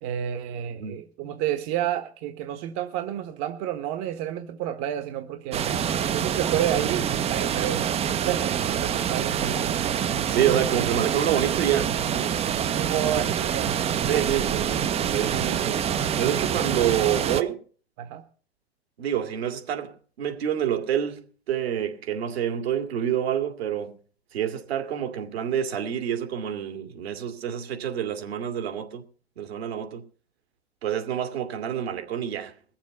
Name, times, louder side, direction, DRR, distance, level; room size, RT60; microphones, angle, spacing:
voice 1, 0.0-5.6 6.1-7.9 8.2-9.6 12.7-13.7 18.0-18.2, right 11 dB, 45° right, 1.3 m, -30 dB
voice 2, 0.7-1.0 10.3-12.4 14.1-15.9 16.2-17.6 19.0-24.0 24.3-29.0 29.4-30.0 30.8-32.6, right 10 dB, 70° right, 2.4 m, -27 dB
sound 1, 5.5-17.4, right 9 dB, 20° right, 0.5 m, -26 dB
21.0 x 7.3 x 5.4 m
hypercardioid pair, 100°, 32 cm